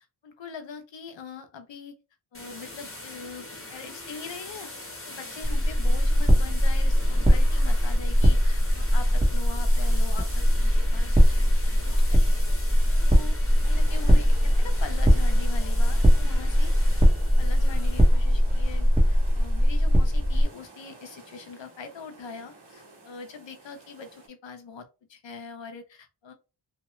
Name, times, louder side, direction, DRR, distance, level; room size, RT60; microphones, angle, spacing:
voice 1, 0.2-1.9 2.3-4.7 5.1-12.4 13.0-13.4 13.7-17.0 17.2-26.3, left 5 dB, 70° left, 0.7 m, -42 dB
sound 1, 2.3-20.7, left 2 dB, 30° left, 1.1 m, -43 dB
sound 2, 5.4-20.5, equal, 15° right, 1.0 m, -21 dB
sound 3, 13.6-24.3, right 3 dB, 60° right, 1.3 m, -50 dB
2.8 x 2.1 x 3.0 m
wide cardioid pair, 70°, 46 cm